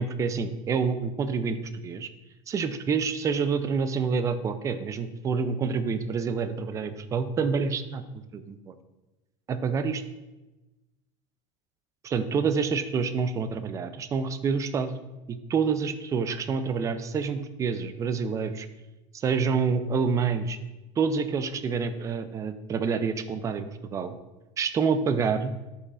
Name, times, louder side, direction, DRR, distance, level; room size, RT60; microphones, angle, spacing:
voice 1, 0.0-1.6 1.8-2.1 2.5-8.7 9.5-10.0 12.0-14.9 15.3-18.7 19.1-20.6 21.0-24.2 24.6-25.5, right 5 dB, 20° right, 10 dB, 0.4 m, -27 dB
12.0 x 5.6 x 2.5 m, 1.1 s
supercardioid pair, 155°, 17 cm